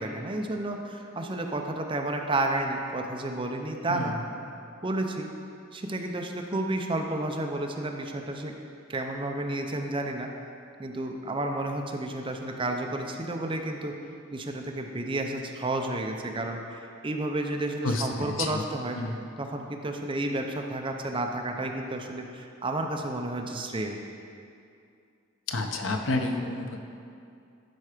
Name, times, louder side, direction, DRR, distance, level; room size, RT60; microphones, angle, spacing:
voice 1, 0.0-4.2 4.8-5.3 5.7-8.5 8.9-10.3 10.8-13.9 14.3-16.6 17.0-19.0 19.4-24.0, right 2 dB, 25° right, 3 dB, 0.6 m, -31 dB
voice 2, 17.8-18.6 19.0-19.2 25.5-26.8, left 2 dB, 70° left, 4 dB, 0.8 m, -30 dB
12.0 x 4.7 x 5.0 m, 2.5 s
head